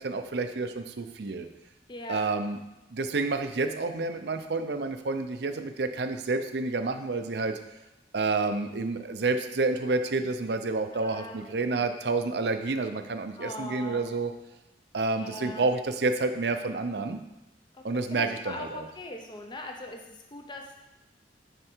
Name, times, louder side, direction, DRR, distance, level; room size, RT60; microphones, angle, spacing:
voice 1, 0.0-1.5 2.1-2.6 2.9-7.6 8.1-14.3 14.9-17.2 17.8-18.9, right 3 dB, 65° right, 8 dB, 0.6 m, -29 dB
voice 2, 1.9-2.3 10.9-11.9 13.4-14.1 15.1-15.7 17.7-20.9, left 1 dB, 25° left, 3 dB, 0.6 m, -41 dB
10.0 x 4.4 x 4.5 m, 0.98 s
head